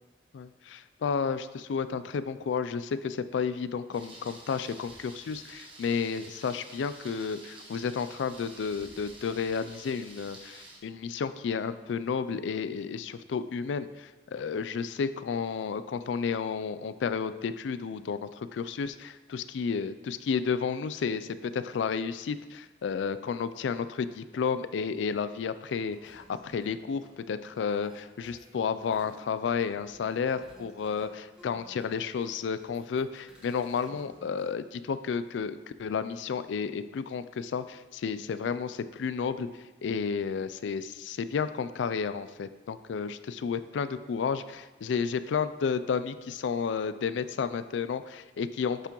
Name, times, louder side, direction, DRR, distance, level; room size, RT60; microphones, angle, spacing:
voice 1, 0.3-39.5 39.8-48.9, left 6 dB, 85° left, 13 dB, 0.3 m, -32 dB
Thunder, 3.9-10.8, right 2 dB, 30° right, 0.9 m, -50 dB
sound 1, 25.9-34.5, right 1 dB, 5° right, 1.1 m, -57 dB
8.2 x 5.8 x 3.0 m, 1.2 s
head